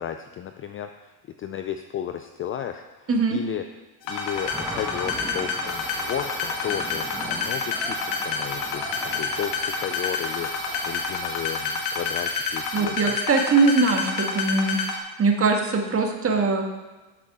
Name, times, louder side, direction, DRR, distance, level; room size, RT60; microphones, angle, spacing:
voice 1, 0.0-3.6 4.0-13.2, left 10 dB, 30° left, 7 dB, 0.4 m, -34 dB
voice 2, 3.1-3.4 12.7-14.8 15.2-16.6, right 4 dB, 30° right, 2 dB, 1.7 m, -21 dB
sound 1, 4.1-15.0, left 4 dB, 70° left, 2.0 m, -28 dB
sound 2, 4.3-11.2, right 1 dB, 5° right, 1.3 m, -38 dB
sound 3, 5.7-12.8, left 7 dB, 85° left, 1.2 m, -41 dB
13.5 x 6.8 x 3.6 m, 1.2 s
supercardioid pair, 105°, 48 cm